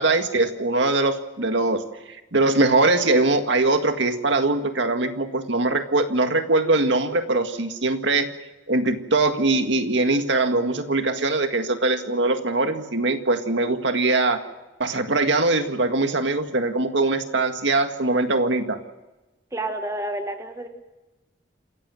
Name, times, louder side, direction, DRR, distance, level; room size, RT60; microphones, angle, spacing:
voice 1, 0.0-1.8 2.1-8.3 8.7-14.4 14.8-18.8, right 2 dB, 75° right, 6 dB, 1.9 m, -22 dB
voice 2, 19.5-20.7, right 1 dB, 15° right, 6 dB, 1.5 m, -29 dB
28.0 x 15.0 x 7.7 m, 1.1 s
head